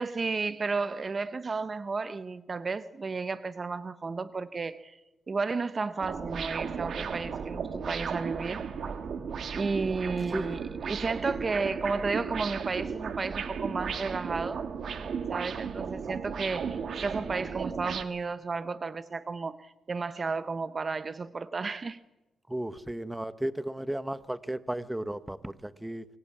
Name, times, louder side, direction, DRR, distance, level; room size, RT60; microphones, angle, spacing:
voice 1, 0.0-5.0 5.3-8.6 9.5-14.6 15.3-22.0, right 4 dB, 30° right, 0.8 m, -33 dB
sound 1, 6.0-18.0, right 6 dB, 55° right, 1.9 m, -35 dB
voice 2, 10.3-10.6 22.5-26.1, right 1 dB, 5° right, 1.1 m, -34 dB
24.5 x 23.0 x 8.7 m
cardioid pair, 115°, 0 cm